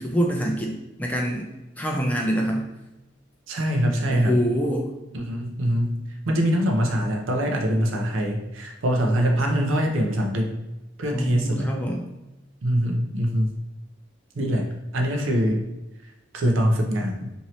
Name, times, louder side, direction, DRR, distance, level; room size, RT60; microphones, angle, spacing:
voice 1, 0.0-1.5 1.8-2.7 4.1-4.9 11.1-12.0, equal, 10° left, 0 dB, 0.3 m, -25 dB
voice 2, 3.5-4.4 5.1-6.0 6.3-10.6 11.0-11.7 12.6-13.6 14.4-15.7 16.3-17.3, equal, 75° right, 2 dB, 0.6 m, -23 dB
2.8 x 2.6 x 3.0 m, 0.99 s
head